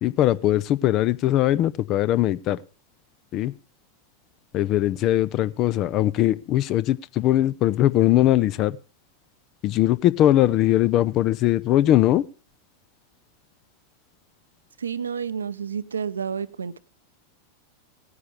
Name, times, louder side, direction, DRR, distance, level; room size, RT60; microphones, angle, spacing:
voice 1, 0.0-2.6 3.3-3.5 4.5-8.8 9.6-12.2, left 13 dB, 35° left, 0.6 m, -20 dB
voice 2, 14.8-16.8, right 7 dB, 70° right, 0.7 m, -30 dB
17.5 x 9.6 x 3.3 m
figure-of-eight pair, 90°, 0 cm